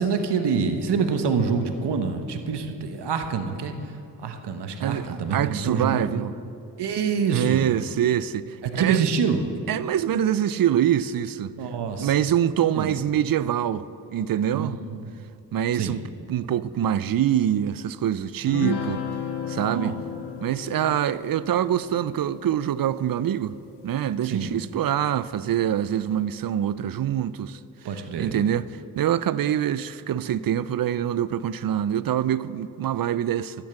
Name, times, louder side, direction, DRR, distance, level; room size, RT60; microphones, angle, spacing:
voice 1, 0.0-3.7 4.2-6.2 6.8-7.7 8.6-9.5 11.6-12.2 12.8-12.9 14.5-15.1 15.7-16.0 19.7-20.0 24.2-24.5 27.8-28.4, right 5 dB, 75° right, 1.2 m, -26 dB
voice 2, 4.8-6.3 7.3-9.0 9.7-11.6 12.0-14.7 15.5-16.0 16.3-19.0 19.5-20.0 20.4-23.6 23.8-27.6 28.2-28.7 29.0-33.6, right 10 dB, 55° right, 0.5 m, -25 dB
sound 1, 18.5-24.1, left 6 dB, 80° left, 1.1 m, -35 dB
12.0 x 8.8 x 7.1 m
cardioid pair, 50°, 40 cm